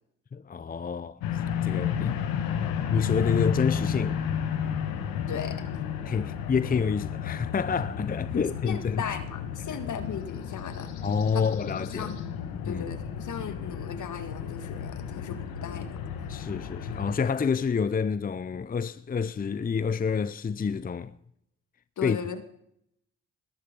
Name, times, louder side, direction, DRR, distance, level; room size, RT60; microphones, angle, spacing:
voice 1, 0.3-2.2 2.9-4.2 6.1-9.0 11.0-12.2 12.7-12.9 16.3-21.1 22.0-22.2, left 6 dB, 25° left, 0.6 m, -28 dB
sound 1, 1.2-17.2, left 8 dB, 85° left, 1.5 m, -32 dB
voice 2, 5.3-5.6 8.3-10.9 11.3-11.5 11.9-12.2 12.6-16.0 22.0-22.4, left 7 dB, 65° left, 2.0 m, -37 dB
20.0 x 11.5 x 5.3 m
hypercardioid pair, 45°, 33 cm